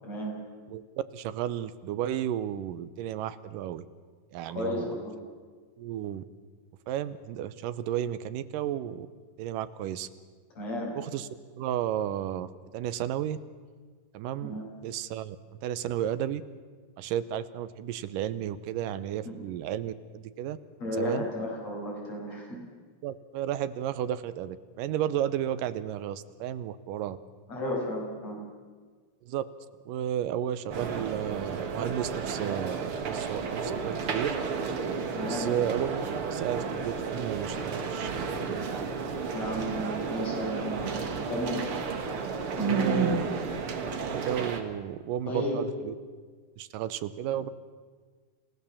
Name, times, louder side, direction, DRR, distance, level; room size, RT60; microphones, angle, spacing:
voice 1, 0.0-0.3 4.5-5.1 10.6-10.9 14.4-14.7 19.3-19.4 20.8-22.6 27.5-28.4 35.1-35.5 39.3-41.6 42.6-43.1 45.3-45.6, right 1 dB, 50° left, -2 dB, 7.0 m, -32 dB
voice 2, 0.7-3.9 4.3-5.0 5.8-6.2 6.9-9.1 9.4-10.1 11.0-11.3 11.6-13.4 14.1-15.4 15.6-16.4 17.0-20.6 21.0-21.2 23.0-27.2 29.2-29.5 29.9-34.4 35.2-38.1 42.7-43.3 44.1-45.9 46.6-47.5, right 10 dB, 85° right, 14 dB, 2.5 m, -33 dB
sound 1, 30.7-44.6, right 5 dB, 50° right, 2.1 m, -33 dB
28.5 x 16.5 x 7.2 m, 1.5 s
omnidirectional pair, 3.8 m